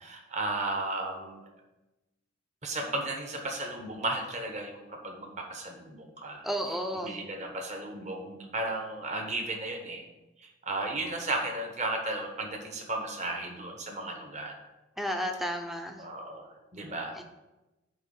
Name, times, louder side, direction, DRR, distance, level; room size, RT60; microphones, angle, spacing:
voice 1, 0.0-1.4 2.6-6.5 6.9-10.1 10.4-14.5 16.0-17.2, right 2 dB, 35° right, 2 dB, 1.1 m, -34 dB
voice 2, 6.4-7.1 15.0-16.0 17.1-17.2, equal, ahead, 4 dB, 0.6 m, -32 dB
9.3 x 3.1 x 6.5 m, 1.0 s
head